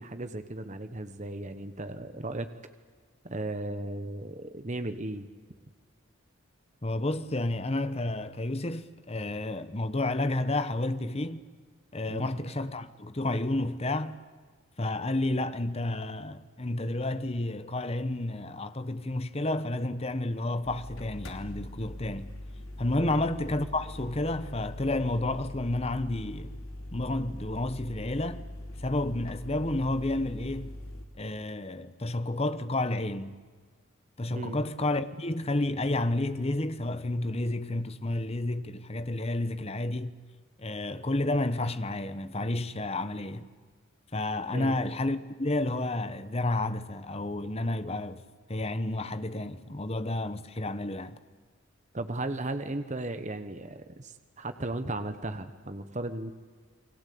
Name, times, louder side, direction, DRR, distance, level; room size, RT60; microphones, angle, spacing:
voice 1, 0.0-2.5 3.2-5.3 12.1-12.4 23.0-23.2 34.3-34.6 44.5-44.7 51.9-56.3, right 2 dB, 35° right, 1.2 m, -36 dB
voice 2, 6.8-11.4 11.9-14.2 14.8-22.3 22.8-26.5 26.9-28.4 28.8-30.7 31.2-33.3 34.2-40.2 40.6-43.5 44.1-51.2, left 2 dB, 30° left, 1.1 m, -31 dB
sound 1, 20.6-31.1, left 1 dB, 85° left, 3.0 m, -42 dB
29.5 x 21.0 x 8.6 m
head